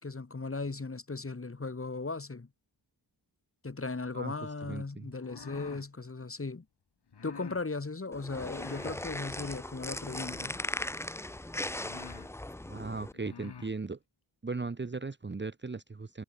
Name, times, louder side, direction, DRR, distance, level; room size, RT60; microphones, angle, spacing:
voice 1, 0.0-2.5 3.6-6.6 7.2-10.6, left 3 dB, 30° left, 5.1 m, -37 dB
voice 2, 4.6-5.1 12.7-14.0 14.4-16.2, right 4 dB, 25° right, 1.3 m, -37 dB
sound 1, 5.1-5.9 7.1-7.6 8.5-9.0 10.0-10.6 11.3-11.4 11.7-12.3 13.1-13.7, left 6 dB, 65° left, 5.0 m, -48 dB
sound 2, 8.1-13.1, left 1 dB, 5° left, 0.5 m, -38 dB
wide cardioid pair, 160°, 44 cm